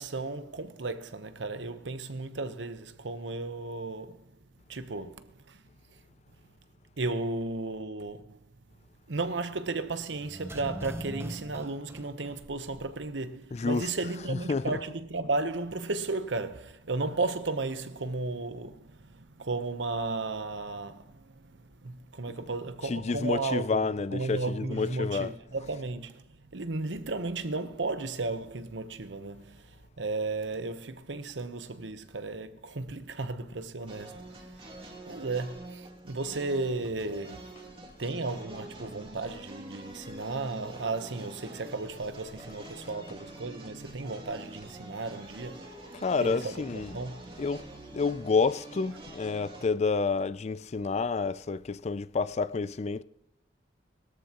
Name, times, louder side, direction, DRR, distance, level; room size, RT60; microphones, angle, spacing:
voice 1, 0.0-4.3 4.7-5.6 7.0-8.5 9.1-37.5 38.0-45.7 46.2-47.2, right 3 dB, 80° right, 1.0 m, -34 dB
sound 1, 10.2-13.0 13.3-13.4, right 1 dB, 15° right, 0.9 m, -41 dB
voice 2, 13.5-13.9 14.3-14.8 22.8-25.3 45.9-46.9 47.4-47.7 47.9-53.0, left 4 dB, 35° left, 0.4 m, -29 dB
sound 2, 33.9-49.7, right 1 dB, 30° right, 2.5 m, -46 dB
21.5 x 13.0 x 3.0 m
head